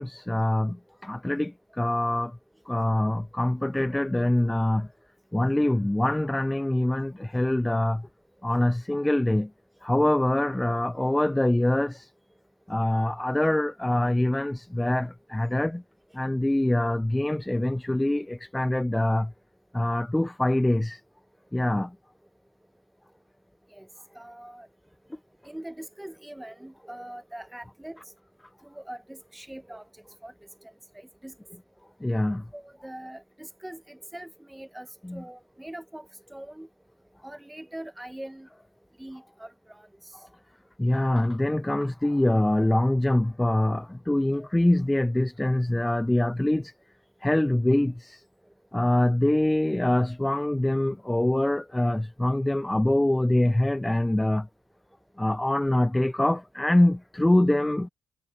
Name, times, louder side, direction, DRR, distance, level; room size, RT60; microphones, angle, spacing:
voice 1, 0.0-2.4 2.7-4.9 5.3-8.1 8.4-9.5 9.8-12.1 12.7-15.8 16.1-19.3 19.7-21.0 21.5-21.9 32.0-32.4 35.0-35.2 40.8-46.7 47.2-48.2 48.7-54.5 55.2-57.9, left 1 dB, 10° left, 0.5 m, -24 dB
voice 2, 23.7-24.7 25.4-28.2 28.6-31.6 31.9-32.0 32.5-36.7 37.2-38.5 39.0-40.3 48.4-48.5 52.5-52.6, right 1 dB, 5° right, 1.3 m, -43 dB
cardioid pair, 90°, 0 cm